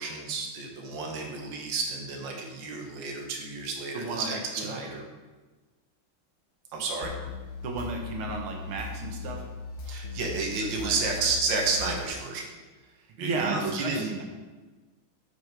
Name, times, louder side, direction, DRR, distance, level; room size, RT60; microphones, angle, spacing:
voice 1, 0.0-5.0 6.7-7.1 9.8-12.6 13.2-14.2, right 4 dB, 65° right, 1 dB, 1.9 m, -31 dB
voice 2, 3.9-4.8 7.6-9.4 10.8-11.3 13.0-14.2, right 3 dB, 90° right, 1 dB, 1.9 m, -34 dB
sound 1, 7.0-12.1, left 4 dB, 70° left, 0.7 m, -38 dB
8.3 x 6.1 x 4.6 m, 1.3 s
omnidirectional pair, 2.3 m